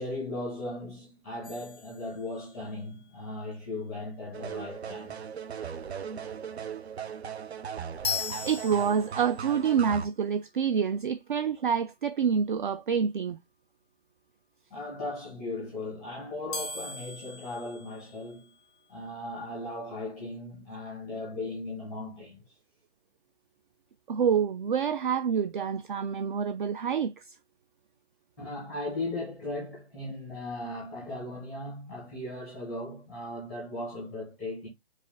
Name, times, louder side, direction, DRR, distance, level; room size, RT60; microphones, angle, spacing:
voice 1, 0.0-5.2 14.7-18.5 18.9-22.4 28.4-34.7, left 2 dB, ahead, 0.5 m, -37 dB
sound 1, 1.4-2.7 8.0-9.5 16.5-18.7, left 6 dB, 90° left, 0.8 m, -38 dB
sound 2, 4.3-10.1, right 7 dB, 85° right, 0.7 m, -38 dB
voice 2, 8.4-13.4 24.1-27.3, right 7 dB, 50° right, 0.4 m, -27 dB
4.8 x 2.4 x 3.4 m
hypercardioid pair, 160°, 31 cm